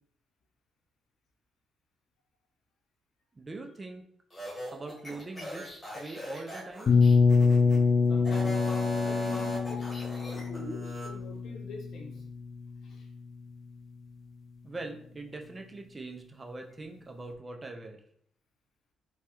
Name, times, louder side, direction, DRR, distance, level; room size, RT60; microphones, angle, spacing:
voice 1, 3.3-4.0 4.7-6.9 14.6-18.0, right 2 dB, 25° right, 4 dB, 0.5 m, -42 dB
sound 1, 4.3-7.8 8.2-11.1, equal, 20° left, 1.3 m, -39 dB
sound 2, 6.9-12.6, left 4 dB, 50° left, 0.4 m, -25 dB
voice 2, 8.1-8.6 9.0-9.8 10.3-12.2 12.8-13.1, left 2 dB, 70° left, 1 dB, 0.8 m, -45 dB
3.2 x 2.3 x 2.9 m, 0.65 s
cardioid pair, 90°, 0 cm